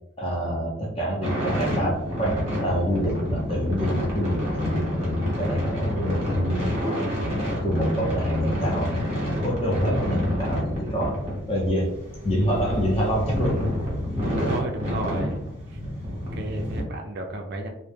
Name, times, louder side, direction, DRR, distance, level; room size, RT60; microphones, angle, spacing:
voice 1, 0.2-6.7 7.6-9.0 9.4-11.2 11.5-13.9, equal, 25° left, -2 dB, 0.6 m, -26 dB
sound 1, 1.2-16.8, equal, 30° right, 0.9 m, -28 dB
voice 2, 14.4-15.4 15.7-15.8 16.1-17.7, right 2 dB, 50° right, 3 dB, 0.3 m, -32 dB
2.1 x 2.1 x 3.1 m, 0.80 s
head